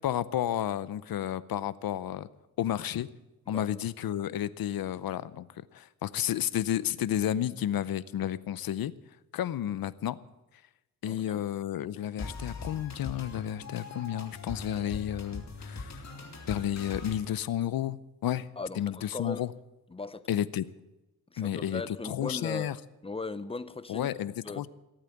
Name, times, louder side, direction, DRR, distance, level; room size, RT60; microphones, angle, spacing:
voice 1, 0.0-2.3 2.6-3.1 3.5-5.5 5.7-8.9 9.3-10.2 11.0-16.1 16.5-18.5 18.8-19.5 20.3-20.7 21.4-22.7 23.9-24.7, left 11 dB, 65° left, 0.7 m, -31 dB
voice 2, 11.0-11.4 18.6-19.4 19.9-20.5 21.3-24.1 24.4-24.7, left 3 dB, 15° left, 0.8 m, -38 dB
sound 1, 12.2-17.1, left 3 dB, 45° left, 2.7 m, -41 dB
18.5 x 8.9 x 7.9 m
cardioid pair, 100°, 38 cm